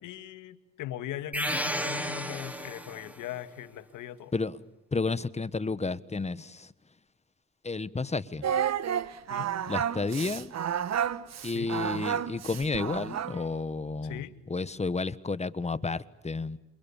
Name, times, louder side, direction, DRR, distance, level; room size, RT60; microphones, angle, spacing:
voice 1, 0.0-4.3 9.3-9.5 11.5-11.8 14.0-14.3, left 12 dB, 90° left, 11 dB, 2.0 m, -40 dB
sound 1, 1.3-3.2, equal, 5° right, 4.6 m, -32 dB
voice 2, 4.9-6.7 7.6-8.5 9.7-10.5 11.4-14.2 14.5-16.6, left 3 dB, 20° left, 16 dB, 1.3 m, -31 dB
Singing, 8.4-13.5, right 9 dB, 60° right, 1.4 m, -31 dB
28.5 x 28.0 x 7.2 m, 0.96 s
cardioid pair, 90°, 30 cm